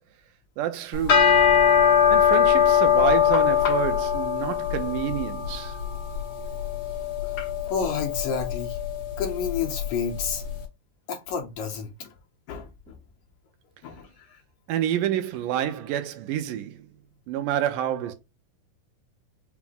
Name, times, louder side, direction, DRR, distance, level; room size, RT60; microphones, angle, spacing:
voice 1, 0.6-1.4 2.1-5.8 14.7-16.9 17.3-18.1, right 11 dB, 85° right, 2.2 m, -28 dB
sound 1, 0.9-10.3, left 8 dB, 60° left, 1.8 m, -22 dB
voice 2, 7.7-8.8 9.2-10.4 11.1-12.1 12.5-13.0 13.8-14.4, left 6 dB, 75° left, 1.9 m, -31 dB
5.8 x 2.1 x 3.6 m
omnidirectional pair, 3.7 m